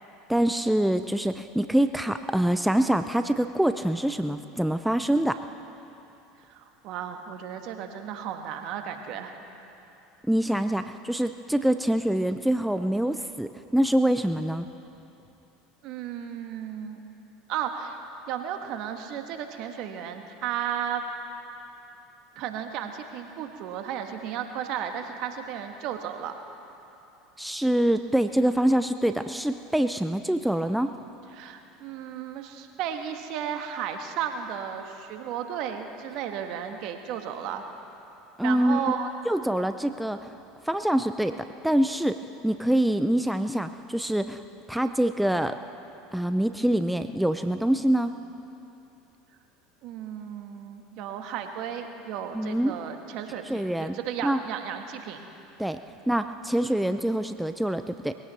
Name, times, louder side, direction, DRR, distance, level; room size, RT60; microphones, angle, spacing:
voice 1, 0.3-5.4 10.3-14.7 27.4-30.9 38.4-38.8 39.3-40.3 40.7-41.4 41.6-42.2 42.4-44.4 44.7-45.5 46.1-48.1 52.3-52.8 53.5-53.9 54.2-54.4 55.6-55.8 56.1-58.1, right 1 dB, 5° right, 9 dB, 0.5 m, -25 dB
voice 2, 6.5-9.3 15.8-17.0 17.5-18.0 18.3-21.0 22.3-26.3 31.3-37.6 38.4-39.1 49.8-55.3, right 9 dB, 60° right, 5 dB, 1.5 m, -34 dB
21.0 x 16.5 x 4.2 m, 2.9 s
hypercardioid pair, 85°, 0 cm